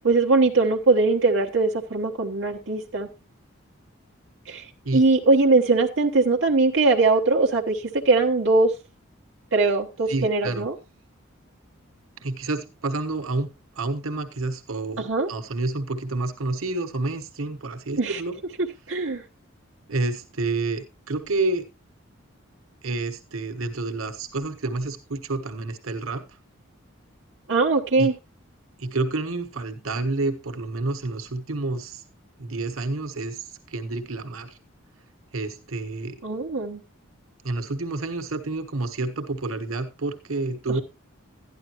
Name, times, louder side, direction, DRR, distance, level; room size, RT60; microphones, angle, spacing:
voice 1, 0.0-3.1 4.5-4.6 4.9-7.8 8.0-8.7 9.5-10.7 15.0-15.3 18.0-18.2 18.9-19.2 27.5-28.1 36.2-36.8, right 3 dB, 70° right, 0 dB, 1.1 m, -21 dB
voice 2, 10.1-10.7 12.2-13.5 13.7-18.4 19.9-21.7 22.8-26.4 28.0-28.1 28.8-32.0 32.4-34.6 35.3-36.2 37.4-40.8, right 2 dB, 85° right, 7 dB, 1.3 m, -29 dB
12.5 x 10.5 x 3.0 m, 0.26 s
head